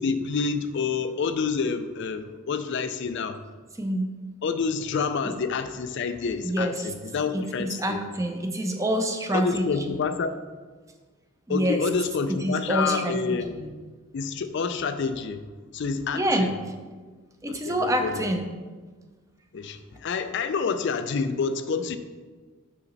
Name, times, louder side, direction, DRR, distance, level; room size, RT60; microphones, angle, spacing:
voice 1, 0.0-3.4 4.4-8.0 9.3-10.3 11.5-13.7 14.1-15.4 15.7-16.6 17.5-18.3 19.5-22.0, left 5 dB, 55° left, 9 dB, 0.4 m, -28 dB
voice 2, 3.8-4.1 6.4-6.7 7.3-9.7 11.5-11.8 12.4-13.2 13.5-13.7 16.1-16.5 17.4-18.5, right 1 dB, 15° right, 5 dB, 0.6 m, -26 dB
7.0 x 5.7 x 4.0 m, 1.4 s
head